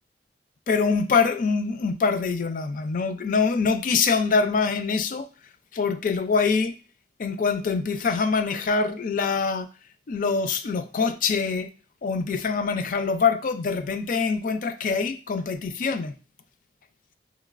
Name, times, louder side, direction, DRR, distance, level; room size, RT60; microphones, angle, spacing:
voice 1, 0.7-5.3 5.7-6.8 7.2-9.7 10.1-11.7 12.0-16.1, left 5 dB, 50° left, 0.4 m, -24 dB
5.7 x 3.0 x 2.4 m
head